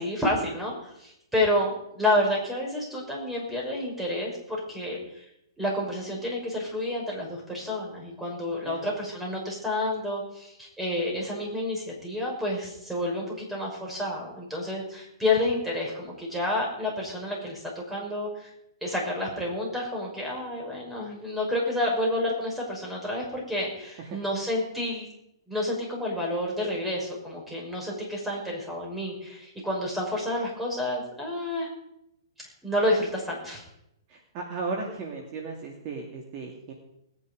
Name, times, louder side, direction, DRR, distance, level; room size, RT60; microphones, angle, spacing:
voice 1, 0.0-5.2 5.6-18.5 18.8-25.1 25.5-31.7 32.6-33.6, left 1 dB, 5° right, -2 dB, 5.8 m, -29 dB
voice 2, 34.1-36.7, right 4 dB, 35° right, 1 dB, 2.5 m, -35 dB
19.5 x 9.8 x 5.3 m, 0.83 s
hypercardioid pair, 130°, 2 cm